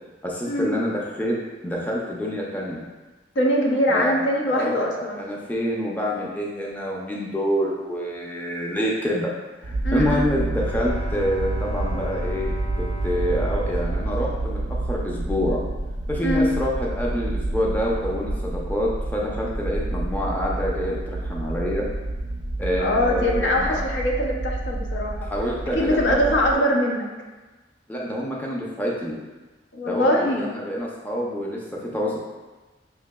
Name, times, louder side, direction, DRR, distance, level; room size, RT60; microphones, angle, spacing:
voice 1, 0.2-2.9 3.9-4.2 4.5-9.3 9.6-12.5 12.8-15.6 16.1-21.9 22.6-23.8 25.2-26.4 27.9-29.2 29.8-32.2, equal, 10° left, -4 dB, 0.5 m, -27 dB
voice 2, 3.4-5.2 9.8-10.3 16.2-16.5 22.8-25.3 25.7-27.1 29.7-30.5, equal, 70° left, 0 dB, 0.6 m, -22 dB
sound 1, 9.6-26.5, right 2 dB, 60° right, 0.5 m, -29 dB
Bowed string instrument, 10.3-15.3, equal, 35° left, 0.8 m, -38 dB
5.7 x 2.7 x 2.2 m, 1.2 s
head